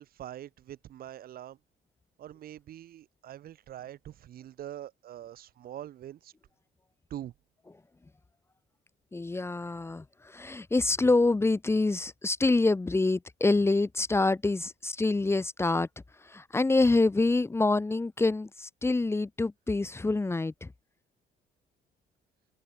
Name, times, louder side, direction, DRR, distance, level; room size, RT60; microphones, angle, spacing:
voice 1, 0.0-1.6 2.2-6.3 7.1-7.3, right 12 dB, 60° right, 3.2 m, -44 dB
voice 2, 9.1-15.9 16.2-20.7, left 3 dB, 15° left, 1.4 m, -26 dB
cardioid pair, 110°, 17 cm